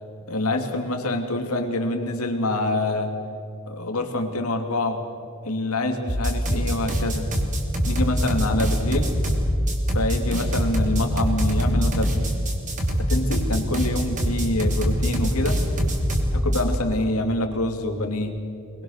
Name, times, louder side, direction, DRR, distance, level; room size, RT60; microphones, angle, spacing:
voice 1, 0.3-3.1 3.7-5.0 5.4-7.3 7.8-9.1 9.9-12.2 13.1-15.6 16.3-18.4, left 2 dB, 75° left, 4 dB, 2.8 m, -26 dB
sound 1, 6.1-16.8, equal, 35° right, 3.2 m, -23 dB
22.5 x 22.0 x 6.7 m, 2.5 s
head